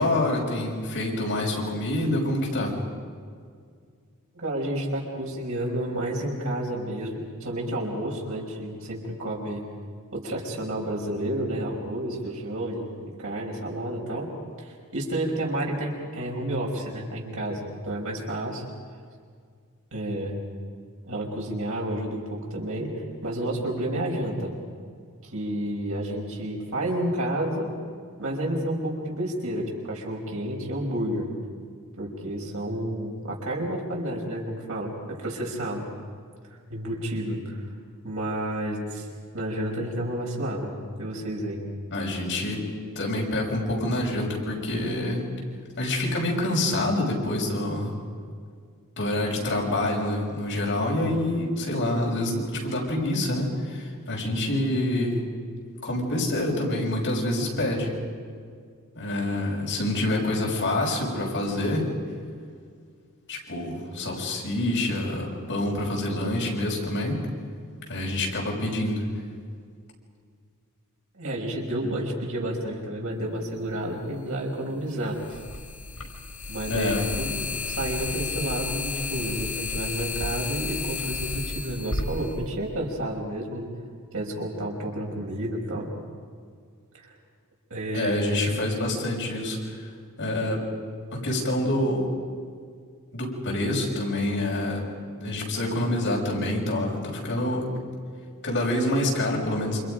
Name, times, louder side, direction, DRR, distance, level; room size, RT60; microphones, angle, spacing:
voice 1, 0.0-2.8 41.9-42.7 43.0-45.3 45.8-47.9 49.0-55.2 55.8-58.0 58.9-61.9 63.3-67.2 67.9-69.1 76.7-77.0 87.9-89.6 90.2-90.7 91.1-92.1 93.1-94.9 95.2-97.7 98.4-99.8, left 1 dB, 55° left, -2 dB, 6.2 m, -26 dB
voice 2, 4.3-9.6 10.1-14.3 14.6-18.6 19.9-20.4 21.0-24.5 25.2-27.7 28.2-31.3 32.0-35.9 36.7-37.6 38.0-39.1 39.3-41.6 71.1-75.4 76.5-83.7 84.1-85.9 86.9-87.1 87.7-88.4, right 1 dB, 65° right, -2 dB, 5.7 m, -30 dB
sound 1, 73.7-73.8 75.1-83.1, left 4 dB, 80° left, 5.3 m, -32 dB
29.0 x 27.0 x 5.3 m, 2.1 s
head